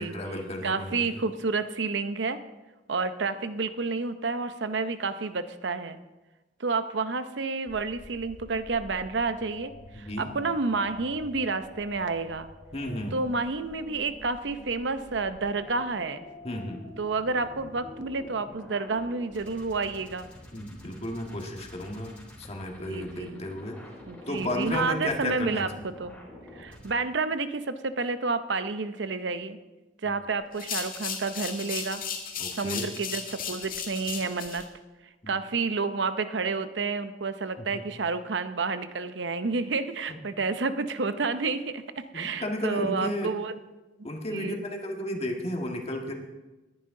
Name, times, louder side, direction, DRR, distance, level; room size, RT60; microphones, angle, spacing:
voice 1, 0.0-1.2 9.9-10.3 12.7-13.2 16.4-16.8 20.5-23.8 24.3-25.7 32.4-32.9 35.2-35.4 37.6-37.8 40.1-40.2 42.1-43.3 44.0-46.1, left 1 dB, 35° left, 2 dB, 1.8 m, -33 dB
voice 2, 0.6-2.4 2.9-6.0 6.6-12.5 13.1-16.3 17.0-20.3 22.8-23.4 24.1-26.2 26.5-29.6 30.0-32.0 32.5-34.6 35.3-43.5 44.3-44.6, right 4 dB, 70° right, 11 dB, 0.7 m, -30 dB
sound 1, 7.7-26.9, left 1 dB, 5° left, 3.6 m, -48 dB
sound 2, 30.5-34.6, left 7 dB, 50° left, 1.9 m, -35 dB
20.0 x 10.5 x 3.8 m, 1.1 s
head